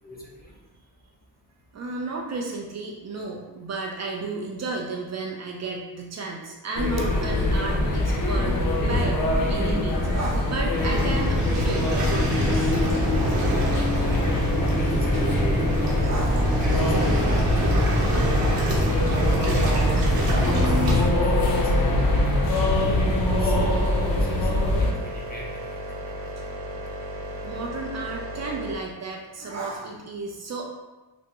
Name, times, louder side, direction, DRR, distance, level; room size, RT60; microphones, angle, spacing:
voice 1, 1.7-9.2 9.5-12.8 15.1-15.2 16.0-16.6 27.4-30.6, right 3 dB, 45° right, 0 dB, 0.4 m, -33 dB
sound 1, 6.8-24.9, left 1 dB, 60° left, 0.6 m, -23 dB
Waves surf, 10.8-21.1, right 1 dB, 60° right, 1.0 m, -26 dB
sound 2, 12.8-28.8, right 1 dB, 80° right, 0.7 m, -35 dB
voice 2, 14.0-14.4 14.7-17.4 19.1-22.1 22.4-23.6 24.1-24.5 24.8-25.6, equal, 25° left, -3 dB, 0.7 m, -38 dB
3.4 x 2.0 x 2.9 m, 1.1 s
cardioid pair, 95°, 38 cm